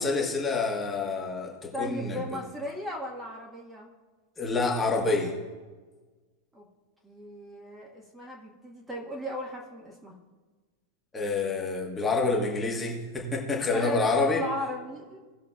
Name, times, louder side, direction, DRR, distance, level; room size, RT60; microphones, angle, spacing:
voice 1, 0.0-2.2 4.4-5.3 11.1-14.4, left 3 dB, 15° left, -1 dB, 1.5 m, -27 dB
voice 2, 1.7-3.9 6.5-6.7 7.0-10.2 13.7-15.2, left 1 dB, 10° right, -3 dB, 1.6 m, -36 dB
18.5 x 6.6 x 2.4 m, 1.3 s
figure-of-eight pair, 90°, 0 cm